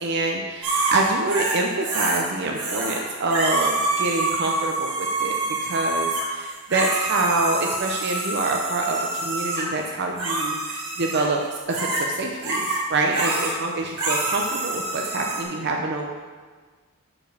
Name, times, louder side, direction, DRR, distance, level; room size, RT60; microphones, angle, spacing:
voice 1, 0.0-11.4 11.7-16.1, right 2 dB, 50° right, 1 dB, 0.7 m, -26 dB
sound 1, 0.6-2.2 2.5-3.0 3.3-9.7 10.2-11.3 11.7-12.1 12.4-12.8 13.1-13.6 14.0-15.4, right 2 dB, 90° right, 2.7 m, -26 dB
7.3 x 5.0 x 6.7 m, 1.5 s
head